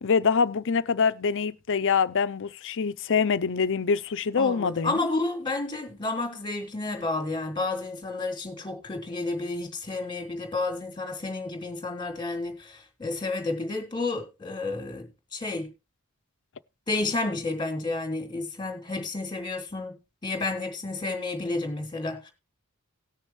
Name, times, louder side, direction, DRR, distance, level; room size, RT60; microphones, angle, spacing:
voice 1, 0.0-5.0, left 5 dB, 60° left, 0.6 m, -25 dB
voice 2, 4.4-15.7 16.9-20.0 20.2-22.3, left 2 dB, 20° left, 3.0 m, -31 dB
18.5 x 6.6 x 3.1 m
head